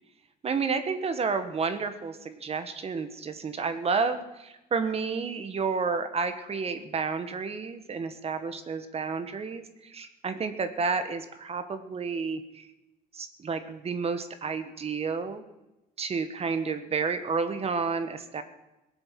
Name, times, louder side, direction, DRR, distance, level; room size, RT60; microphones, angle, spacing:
voice 1, 0.4-12.6 13.1-15.4 16.0-18.4, right 5 dB, 35° right, 9 dB, 1.5 m, -31 dB
18.0 x 7.9 x 7.6 m, 0.97 s
cardioid pair, 110°, 17 cm